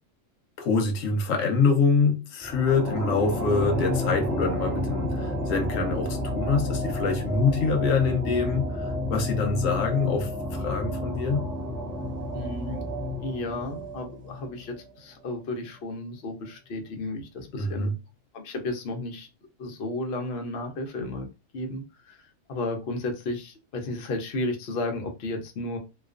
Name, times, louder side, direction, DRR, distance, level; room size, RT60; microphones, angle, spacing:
voice 1, 0.6-11.4 17.5-17.9, left 4 dB, 85° left, 1.0 m, -25 dB
sound 1, 2.4-15.0, left 1 dB, 10° left, 0.5 m, -31 dB
voice 2, 12.3-12.8 13.2-17.9 18.3-19.3 19.6-21.3 21.5-22.2 22.5-25.8, left 2 dB, 60° left, 0.8 m, -33 dB
2.3 x 2.3 x 2.4 m
omnidirectional pair, 1.3 m